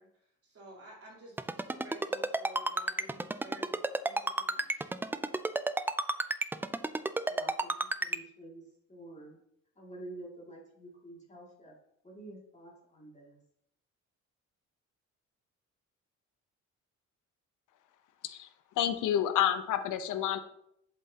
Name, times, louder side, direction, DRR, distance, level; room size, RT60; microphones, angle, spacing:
voice 1, 0.0-4.9, right 1 dB, 50° right, -4 dB, 3.3 m, -53 dB
Ringtone, 1.4-8.2, right 2 dB, 5° right, 0.3 m, -31 dB
voice 2, 7.3-7.7 8.0-8.6 8.9-9.4 9.8-11.7 12.0-13.4, right 1 dB, 25° left, -3 dB, 2.4 m, -48 dB
voice 3, 18.8-20.4, left 10 dB, 80° left, 10 dB, 0.8 m, -29 dB
7.6 x 7.5 x 2.9 m, 0.74 s
cardioid pair, 90°, 30 cm